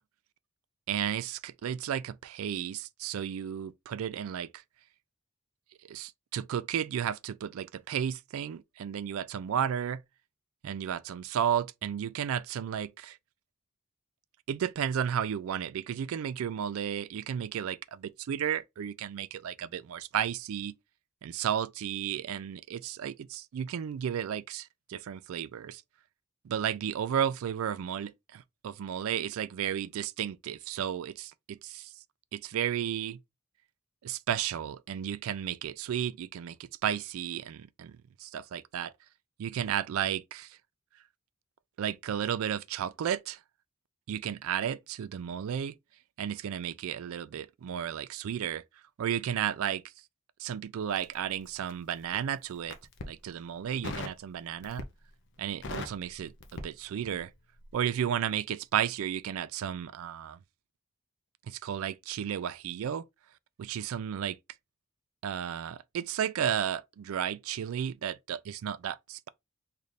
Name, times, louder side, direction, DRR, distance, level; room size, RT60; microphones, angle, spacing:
voice 1, 0.9-4.6 5.9-10.0 10.6-13.2 14.5-20.7 21.2-25.8 26.4-31.9 32.3-33.2 34.0-38.9 39.4-40.6 41.8-43.4 44.1-45.7 46.2-48.6 49.0-49.8 50.4-52.8 53.0-54.9 55.4-57.3 57.7-60.4 61.5-63.1 63.6-64.4 65.2-69.3, right 9 dB, 70° right, 0.3 m, -33 dB
Crackle, 50.9-52.0 52.6-53.2 53.8-54.2 54.6-55.1 55.4-57.3 57.6-57.8, left 2 dB, 55° left, 0.7 m, -40 dB
3.2 x 2.5 x 4.0 m
head